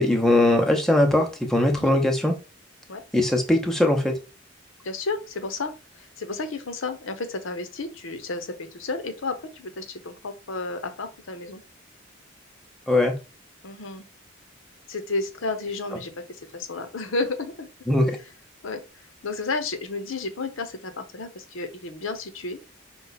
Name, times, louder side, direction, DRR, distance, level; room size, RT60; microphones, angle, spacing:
voice 1, 0.0-2.3 3.1-4.2 12.9-13.1 17.9-18.2, left 1 dB, ahead, 0.7 m, -20 dB
voice 2, 4.8-11.6 13.6-14.1 14.9-17.7 18.6-18.8 19.2-22.6, left 3 dB, 80° left, 0.8 m, -32 dB
5.4 x 2.3 x 4.0 m
head